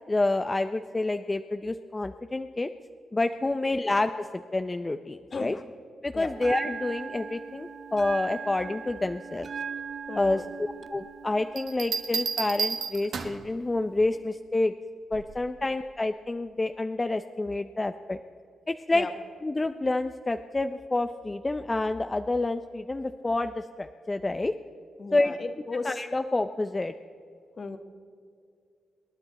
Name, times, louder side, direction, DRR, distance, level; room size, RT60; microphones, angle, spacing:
voice 1, 0.1-2.7 3.1-5.5 6.0-9.5 10.2-14.7 15.1-18.2 18.7-19.1 19.4-24.5 25.1-25.3 25.8-26.9, left 2 dB, 25° left, 8 dB, 0.6 m, -28 dB
Bell, 6.3-14.3, right 6 dB, 55° right, 0.6 m, -40 dB
voice 2, 10.1-10.5 18.9-19.1 25.0-26.0 27.6-27.8, left 4 dB, 50° left, 7 dB, 1.4 m, -35 dB
Bell 2, 11.6-13.5 15.1-15.5, right 5 dB, 70° right, 1.4 m, -31 dB
26.5 x 9.9 x 4.2 m, 2.4 s
cardioid pair, 60°, 0 cm